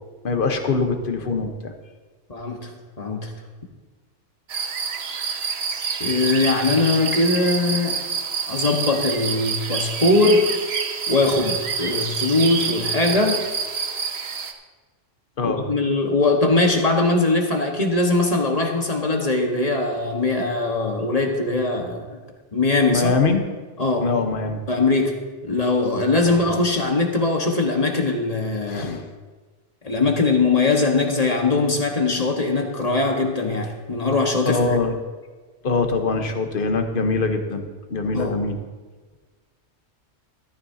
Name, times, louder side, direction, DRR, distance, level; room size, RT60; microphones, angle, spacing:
voice 1, 0.2-1.7 15.4-15.6 22.9-23.4 24.0-24.6 26.3-26.4 28.7-29.1 34.5-34.9 35.6-38.6, left 3 dB, 50° left, 5 dB, 1.2 m, -23 dB
voice 2, 2.3-2.7 3.0-3.3 6.0-8.0 8.5-10.6 11.1-13.4 15.4-22.2 22.5-23.1 23.8-24.1 24.7-25.1 25.4-29.0 29.8-34.8 38.1-38.4, left 3 dB, 30° left, 1 dB, 1.5 m, -21 dB
sound 1, 4.5-14.5, right 6 dB, 60° right, 1.2 m, -27 dB
14.5 x 13.5 x 2.8 m, 1.3 s
omnidirectional pair, 1.3 m